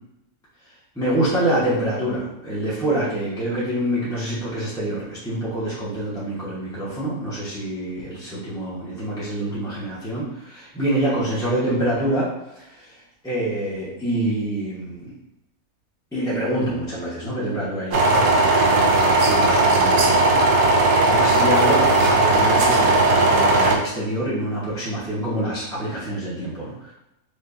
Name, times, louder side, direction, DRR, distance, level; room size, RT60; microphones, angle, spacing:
voice 1, 0.9-12.3 12.5-15.1 16.1-26.9, right 1 dB, 5° left, -10 dB, 0.9 m, -26 dB
sound 1, 17.9-23.8, right 2 dB, 75° right, 1.1 m, -17 dB
5.1 x 2.5 x 2.6 m, 0.91 s
omnidirectional pair, 1.5 m